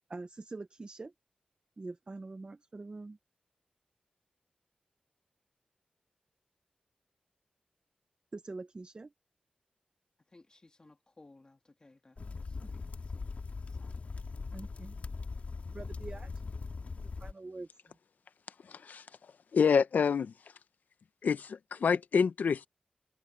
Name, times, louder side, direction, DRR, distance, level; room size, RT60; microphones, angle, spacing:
voice 1, 0.1-1.1 1.8-3.2 8.3-9.1 12.2-12.9 14.5-15.0 15.7-16.3 17.0-18.0, right 3 dB, 35° right, 0.9 m, -45 dB
voice 2, 10.3-12.7 13.0-14.1, left 2 dB, 30° left, 1.6 m, -61 dB
sound 1, 12.2-17.3, left 4 dB, 55° left, 3.0 m, -40 dB
voice 3, 18.7-19.0 19.5-20.3 21.2-22.7, left 6 dB, 80° left, 0.8 m, -27 dB
open air
wide cardioid pair, 80°, 3 cm